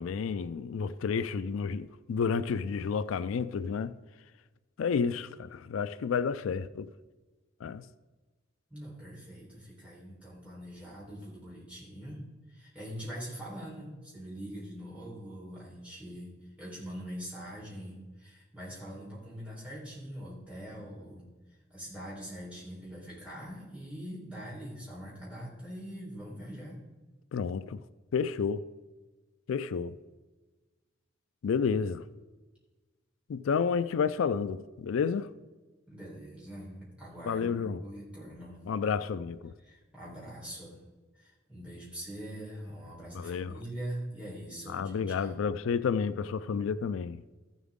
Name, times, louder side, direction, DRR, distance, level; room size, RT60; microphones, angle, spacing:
voice 1, 0.0-3.9 4.8-6.9 7.6-7.8 27.3-27.8 28.1-28.6 29.5-29.9 31.4-32.0 33.3-35.3 37.2-37.8 38.7-39.5 43.1-43.6 44.7-47.2, left 6 dB, 85° left, 0.4 m, -30 dB
voice 2, 8.7-21.3 21.7-26.8 35.9-38.6 39.6-40.8 41.1-45.3, equal, 5° right, 3.9 m, -43 dB
14.0 x 7.3 x 3.7 m
head